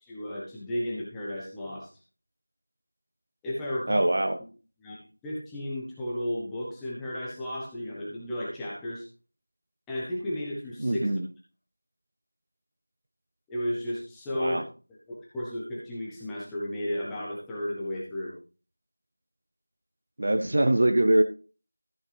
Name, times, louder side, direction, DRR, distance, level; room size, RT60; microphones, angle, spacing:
voice 1, 0.0-1.9 3.4-4.1 4.8-9.0 9.9-11.0 13.5-14.6 15.1-18.3, left 1 dB, 5° left, -7 dB, 1.0 m, -33 dB
voice 2, 3.9-4.4 10.8-11.3 14.4-14.6 20.2-21.2, right 1 dB, 35° right, 7 dB, 0.6 m, -23 dB
14.0 x 6.4 x 3.3 m, 0.35 s
figure-of-eight pair, 180°, 0 cm